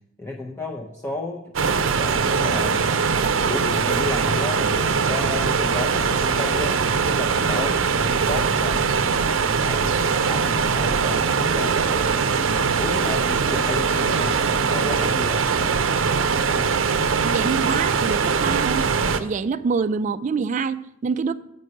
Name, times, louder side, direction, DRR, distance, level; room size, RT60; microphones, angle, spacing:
voice 1, 0.2-2.9 3.4-8.9 9.4-12.3 12.8-15.5, left 2 dB, 15° left, -1 dB, 0.6 m, -32 dB
sound 1, 1.5-19.2, right 5 dB, 85° right, 0.6 m, -21 dB
voice 2, 17.2-18.8 19.2-21.3, right 5 dB, 40° right, 10 dB, 0.3 m, -25 dB
7.9 x 5.3 x 6.4 m, 0.85 s
head